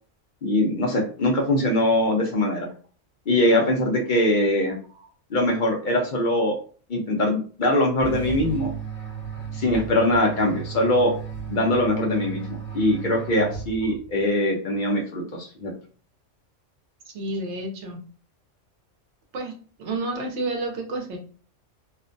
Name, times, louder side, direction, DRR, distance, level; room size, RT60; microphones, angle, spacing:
voice 1, 0.4-2.7 3.3-4.8 5.3-6.6 6.9-8.7 9.5-11.1 11.5-15.7, left 1 dB, 55° left, 1 dB, 0.5 m, -22 dB
sound 1, 8.0-14.1, right 6 dB, 10° right, 0.7 m, -34 dB
voice 2, 17.1-18.0 19.3-19.5 19.8-21.2, right 2 dB, 70° right, 2 dB, 0.9 m, -30 dB
2.5 x 2.1 x 2.5 m, 0.41 s
omnidirectional pair, 1.3 m